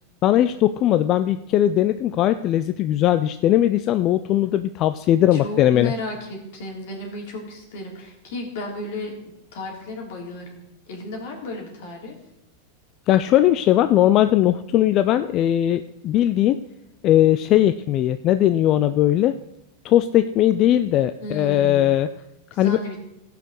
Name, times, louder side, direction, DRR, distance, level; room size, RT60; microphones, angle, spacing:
voice 1, 0.2-5.9 13.1-16.6 17.0-19.4 19.8-22.1 22.6-22.8, left 12 dB, 40° left, 11 dB, 0.4 m, -19 dB
voice 2, 5.3-9.1 9.5-12.1 21.2-21.9 22.5-23.0, left 1 dB, 70° left, 0 dB, 3.5 m, -34 dB
15.0 x 5.8 x 6.4 m, 0.83 s
hypercardioid pair, 120°, 0 cm